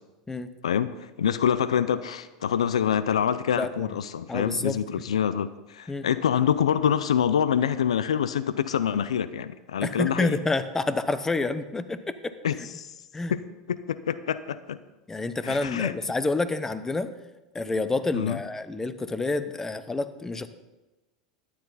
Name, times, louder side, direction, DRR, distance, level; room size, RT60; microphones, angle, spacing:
voice 1, 0.6-10.4 12.4-12.9 13.3-13.4 13.7-14.8 15.4-15.9 18.1-18.4, left 8 dB, 85° left, 15 dB, 0.5 m, -26 dB
voice 2, 3.6-3.9 4.3-4.8 5.9-6.1 9.8-12.3 13.1-13.3 15.1-17.1 17.5-20.5, left 3 dB, 15° left, 12 dB, 0.9 m, -28 dB
13.0 x 10.5 x 4.1 m, 1.1 s
hypercardioid pair, 90°, 3 cm